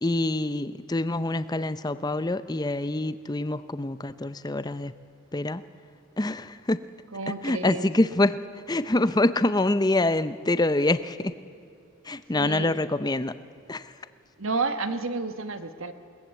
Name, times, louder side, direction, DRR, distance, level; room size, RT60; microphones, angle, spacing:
voice 1, 0.0-4.9 5.3-5.6 6.2-6.8 7.4-8.4 8.7-11.3 12.0-13.3 13.7-13.9, left 2 dB, 20° left, 13 dB, 0.6 m, -25 dB
voice 2, 7.1-7.9 12.3-12.8 14.4-15.9, right 3 dB, 70° right, 9 dB, 1.3 m, -31 dB
22.0 x 19.0 x 8.2 m, 2.5 s
head